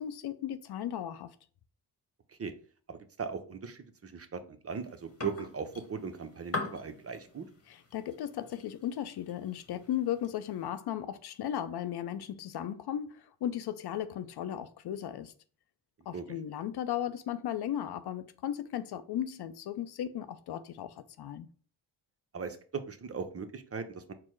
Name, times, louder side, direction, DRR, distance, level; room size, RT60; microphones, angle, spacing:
voice 1, 0.0-1.4 7.7-15.3 16.1-21.5, left 10 dB, 55° left, 0.5 m, -36 dB
voice 2, 2.9-7.5 16.1-16.2 22.3-24.1, right 5 dB, 30° right, 0.6 m, -39 dB
sound 1, 4.7-10.7, left 3 dB, 30° left, 1.2 m, -44 dB
4.4 x 2.1 x 4.4 m
supercardioid pair, 55°, 49 cm